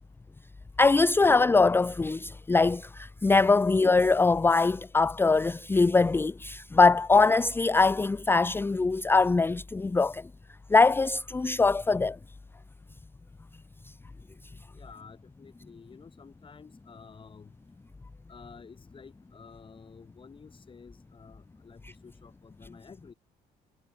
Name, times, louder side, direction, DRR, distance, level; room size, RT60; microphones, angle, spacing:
voice 1, 0.8-10.2 10.7-12.2, left 3 dB, 15° left, 0.6 m, -22 dB
voice 2, 14.7-17.5 18.3-23.1, left 5 dB, 30° left, 6.3 m, -51 dB
cardioid pair, 130°, 17 cm